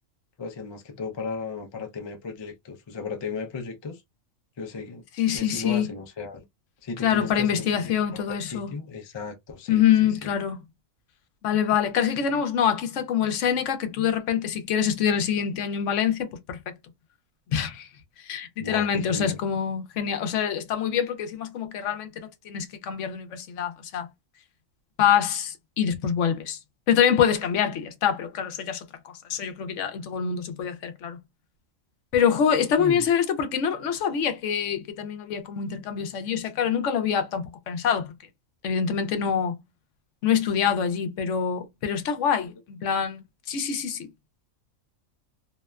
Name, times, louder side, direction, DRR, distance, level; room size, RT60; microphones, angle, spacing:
voice 1, 0.4-4.0 4.6-5.0 5.3-6.4 6.8-10.3 18.6-19.4 32.8-33.1, left 4 dB, 45° left, 0.3 m, -35 dB
voice 2, 5.2-5.9 7.0-8.7 9.7-10.6 11.4-16.7 17.5-17.9 18.2-24.1 25.0-26.6 26.9-28.8 29.3-31.2 32.1-38.1 38.6-39.6 40.2-44.1, left 8 dB, 70° left, 0.9 m, -25 dB
2.8 x 2.1 x 2.3 m
omnidirectional pair, 1.4 m